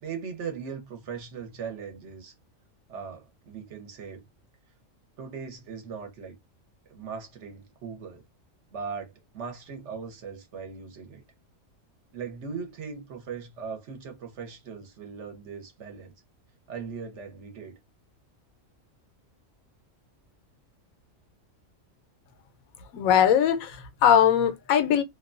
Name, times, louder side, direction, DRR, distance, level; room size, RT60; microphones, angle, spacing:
voice 1, 0.0-2.3 2.9-4.2 5.2-6.4 6.9-8.2 8.7-11.2 12.1-16.1 16.7-17.8, right 6 dB, 65° right, 1.0 m, -39 dB
voice 2, 22.9-25.0, left 9 dB, 85° left, 1.0 m, -21 dB
2.6 x 2.2 x 2.4 m
omnidirectional pair, 1.4 m